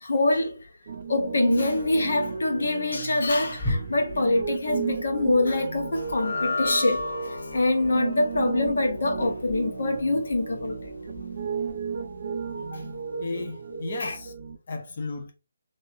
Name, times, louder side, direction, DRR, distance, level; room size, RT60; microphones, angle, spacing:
voice 1, 0.0-0.6 1.1-7.0 7.5-10.9 14.0-14.1, left 2 dB, 70° left, 1.1 m, -25 dB
Piano, 0.9-14.6, right 6 dB, 40° right, 0.5 m, -34 dB
Wild animals, 3.2-11.7, left 1 dB, 20° left, 1.8 m, -40 dB
sound 1, 5.9-12.4, left 2 dB, 90° left, 0.8 m, -35 dB
voice 2, 13.2-14.3 14.7-15.3, left 3 dB, 45° left, 0.8 m, -34 dB
3.1 x 2.7 x 3.0 m
hypercardioid pair, 165°, 0 cm